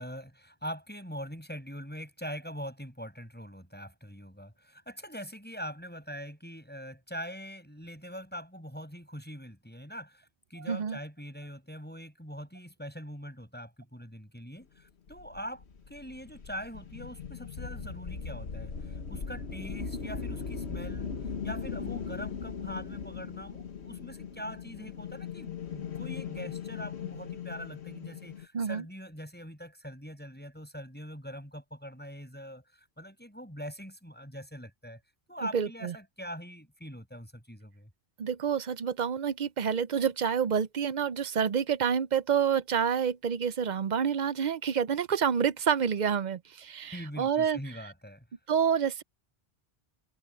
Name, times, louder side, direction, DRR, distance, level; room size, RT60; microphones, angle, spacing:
voice 1, 0.0-21.1 21.4-35.0 35.3-37.9 46.9-48.2, equal, 10° left, 6.7 m, -43 dB
voice 2, 10.7-11.0 28.5-28.8 35.5-35.9 38.2-47.6 48.5-49.0, right 7 dB, 50° right, 0.6 m, -28 dB
sound 1, 15.1-28.5, left 6 dB, 85° left, 1.6 m, -39 dB
omnidirectional pair, 1.1 m